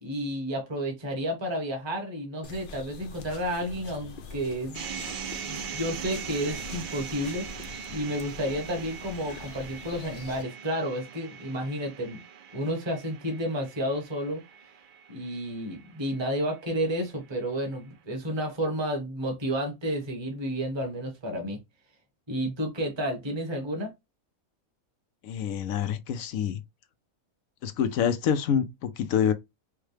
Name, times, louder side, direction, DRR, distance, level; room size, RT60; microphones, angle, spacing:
voice 1, 0.0-4.9 5.4-7.5 7.9-12.2 12.5-14.4 15.1-21.6 22.3-23.9, equal, 20° right, 1.1 m, -31 dB
sound 1, 2.4-10.4, left 4 dB, 50° left, 0.6 m, -44 dB
sound 2, 4.7-16.9, right 8 dB, 80° right, 0.4 m, -41 dB
voice 2, 25.2-26.6 27.6-29.3, left 8 dB, 75° left, 1.0 m, -26 dB
4.7 x 2.2 x 3.3 m
omnidirectional pair, 1.5 m